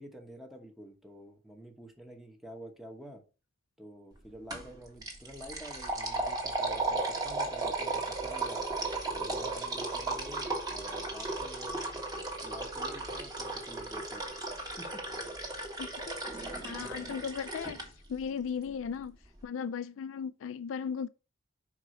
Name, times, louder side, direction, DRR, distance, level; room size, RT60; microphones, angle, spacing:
voice 1, 0.0-3.2 3.8-8.6 9.2-11.8 12.4-14.3 14.8-15.0 16.8-17.1, equal, ahead, 1.1 m, -49 dB
Pouring from water cooler, 4.5-4.7 5.0-17.9, right 3 dB, 20° right, 1.6 m, -35 dB
voice 2, 15.8-17.8 18.1-19.2 19.4-21.1, left 7 dB, 80° left, 0.4 m, -37 dB
5.3 x 4.8 x 4.8 m
head